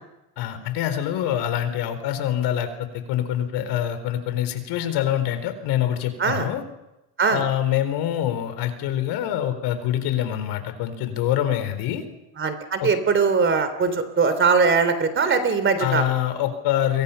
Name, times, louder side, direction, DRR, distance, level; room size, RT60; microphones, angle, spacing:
voice 1, 0.4-6.6 7.3-12.0 12.8-12.9 15.8-17.0, left 11 dB, 70° left, 10 dB, 4.3 m, -25 dB
voice 2, 12.4-16.1, right 5 dB, 30° right, 10 dB, 3.4 m, -21 dB
29.5 x 24.0 x 5.7 m, 0.94 s
cardioid pair, 130°, 41 cm